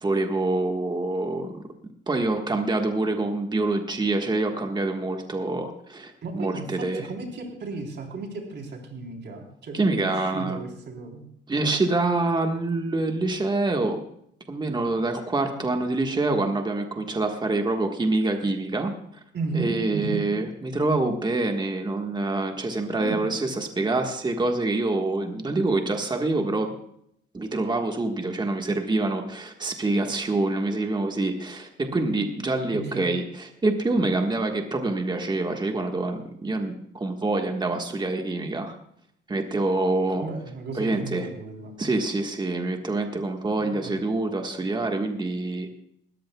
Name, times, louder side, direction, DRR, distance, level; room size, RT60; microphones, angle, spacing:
voice 1, 0.0-1.6 2.1-7.1 9.7-10.6 11.5-14.0 14.5-18.9 19.5-26.7 27.3-38.8 39.3-40.3 40.8-41.3 41.8-45.7, right 2 dB, 20° right, 4 dB, 1.5 m, -26 dB
voice 2, 6.2-11.3 19.3-20.2 22.9-23.2 32.7-33.1 40.2-41.7 43.6-43.9, right 3 dB, 60° right, 2 dB, 3.8 m, -34 dB
20.0 x 14.5 x 2.3 m, 0.71 s
cardioid pair, 90°, 20 cm